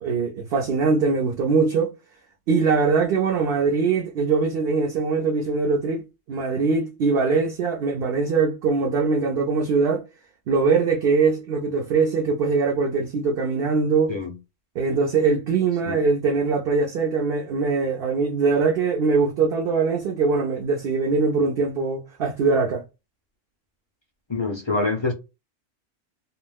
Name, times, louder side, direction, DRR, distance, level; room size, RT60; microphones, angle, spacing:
voice 1, 0.0-1.9 2.5-10.0 10.5-14.2 14.8-22.8, right 4 dB, 60° right, 0.7 m, -22 dB
voice 2, 24.3-25.1, left 3 dB, 45° left, 0.3 m, -25 dB
2.4 x 2.2 x 3.3 m
omnidirectional pair, 1.3 m